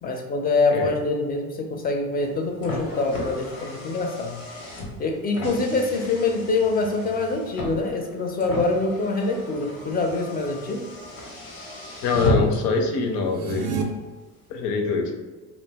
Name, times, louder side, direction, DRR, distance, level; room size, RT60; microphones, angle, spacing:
voice 1, 0.0-4.4 5.0-10.8, left 3 dB, 25° left, 3 dB, 0.5 m, -25 dB
Car, 2.2-12.8, left 2 dB, 90° left, 0.9 m, -33 dB
voice 2, 12.0-13.7 14.5-15.1, left 4 dB, 70° left, 4 dB, 0.6 m, -24 dB
sound 1, 13.2-13.8, right 7 dB, 45° right, 0.5 m, -29 dB
2.4 x 2.0 x 3.4 m, 1.3 s
supercardioid pair, 90°, 38 cm